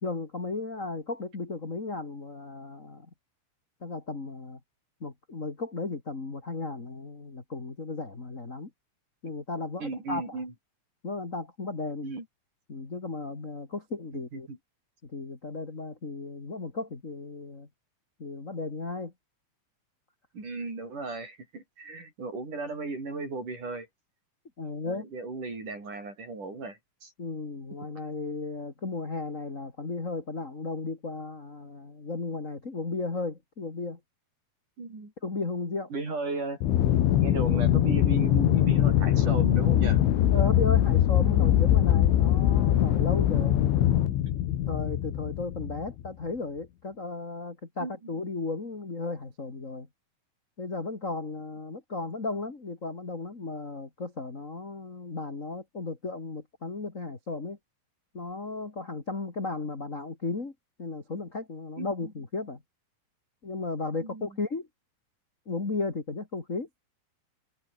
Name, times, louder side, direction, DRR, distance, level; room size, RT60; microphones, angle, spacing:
voice 1, 0.0-3.1 3.8-4.6 5.0-8.7 9.2-10.4 11.0-12.1 12.7-14.5 15.0-17.7 18.2-19.1 24.6-25.0 27.2-34.0 35.2-35.9 40.3-43.5 44.7-49.9 50.6-57.6 58.1-60.5 60.8-62.6 63.4-64.7 65.5-66.7, left 3 dB, 25° left, 1.8 m, -35 dB
voice 2, 9.8-10.5 12.0-12.3 14.1-14.6 20.3-23.9 24.8-27.1 34.8-35.1 35.9-36.6 37.2-40.0 43.3-43.6 47.8-47.9 61.8-62.1 64.0-64.4, right 3 dB, 40° right, 9.3 m, -36 dB
Aircraft, 36.6-46.1, left 12 dB, 80° left, 4.4 m, -22 dB
omnidirectional pair, 5.6 m